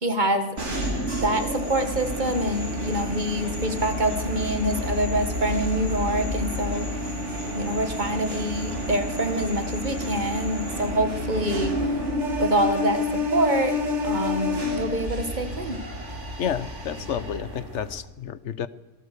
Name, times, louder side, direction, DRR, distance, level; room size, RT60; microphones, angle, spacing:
voice 1, 0.0-0.5 1.2-6.9 7.5-11.8 12.4-13.0 13.3-15.8, right 1 dB, 30° right, 8 dB, 1.7 m, -26 dB
sound 1, 0.6-10.9, left 2 dB, 25° left, 2.5 m, -43 dB
sound 2, 0.6-18.0, left 1 dB, 50° right, 3.3 m, -29 dB
voice 2, 16.4-18.7, left 8 dB, 55° left, 15 dB, 1.1 m, -30 dB
26.0 x 18.5 x 6.8 m, 1.1 s
omnidirectional pair, 1.6 m